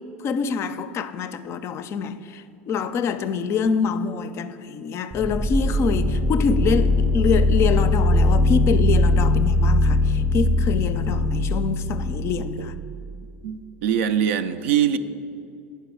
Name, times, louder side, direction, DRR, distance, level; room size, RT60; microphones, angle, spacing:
voice 1, 0.2-12.7, left 6 dB, 40° left, 0.4 m, -25 dB
sound 1, 5.1-12.9, left 1 dB, 20° right, 0.6 m, -20 dB
voice 2, 13.4-15.0, right 9 dB, 70° right, 0.4 m, -23 dB
8.2 x 5.6 x 6.0 m
hypercardioid pair, 85°, 7 cm